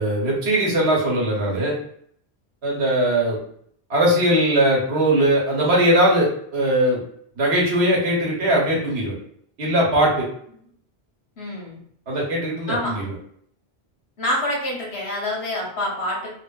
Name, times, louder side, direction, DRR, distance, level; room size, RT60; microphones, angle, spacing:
voice 1, 0.0-1.7 2.6-3.4 3.9-7.0 7.4-9.1 9.6-10.3 12.1-13.1, right 1 dB, 80° right, -2 dB, 1.1 m, -20 dB
voice 2, 11.4-11.8 12.7-13.0 14.2-16.3, left 1 dB, 85° left, -2 dB, 1.1 m, -26 dB
2.8 x 2.2 x 2.2 m, 0.65 s
omnidirectional pair, 1.1 m